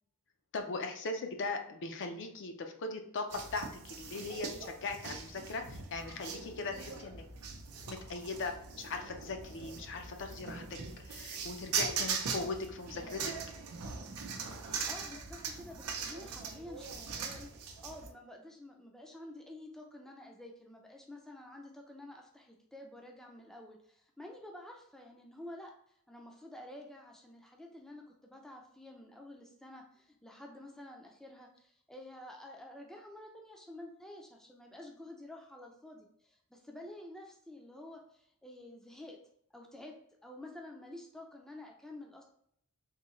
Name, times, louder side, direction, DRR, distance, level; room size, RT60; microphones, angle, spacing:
voice 1, 0.5-7.2 7.9-10.6 11.0-13.3, left 3 dB, 55° left, 5 dB, 0.5 m, -39 dB
sound 1, 3.3-18.1, right 5 dB, 90° right, 0.6 m, -41 dB
voice 2, 14.7-25.7 26.1-39.2 39.5-42.2, left 1 dB, ahead, 1 dB, 0.4 m, -50 dB
3.7 x 2.7 x 3.0 m, 0.68 s
head